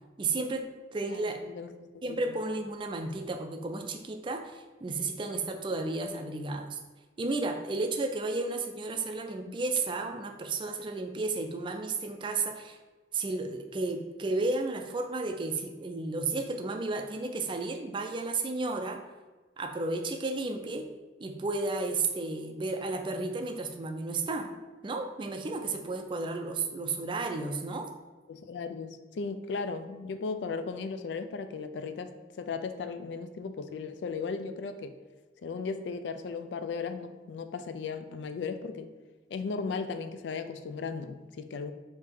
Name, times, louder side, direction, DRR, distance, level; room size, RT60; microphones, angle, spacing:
voice 1, 0.2-1.4 2.0-6.8 7.2-12.8 13.1-19.0 19.6-20.9 21.2-24.6 24.8-27.9, right 3 dB, 30° right, 5 dB, 0.4 m, -33 dB
voice 2, 1.1-2.3 9.5-9.6 28.3-35.0 35.4-38.9 39.3-41.7, left 4 dB, 80° left, 9 dB, 0.3 m, -36 dB
3.5 x 2.8 x 4.5 m, 1.3 s
head